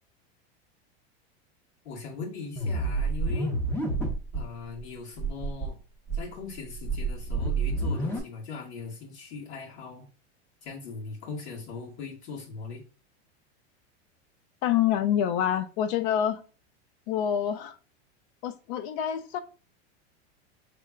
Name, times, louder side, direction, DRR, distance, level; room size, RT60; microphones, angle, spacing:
voice 1, 1.9-3.6 4.3-5.8 6.1-10.1 10.6-12.8, left 4 dB, 85° left, 2.0 m, -40 dB
sound 1, 2.6-4.4 4.8-4.9 5.2-5.7 6.1-8.2, right 3 dB, 5° left, 0.6 m, -29 dB
voice 2, 14.6-16.4 17.1-17.8 18.4-19.4, left 10 dB, 50° left, 0.6 m, -26 dB
4.3 x 3.5 x 2.4 m
supercardioid pair, 150°, 33 cm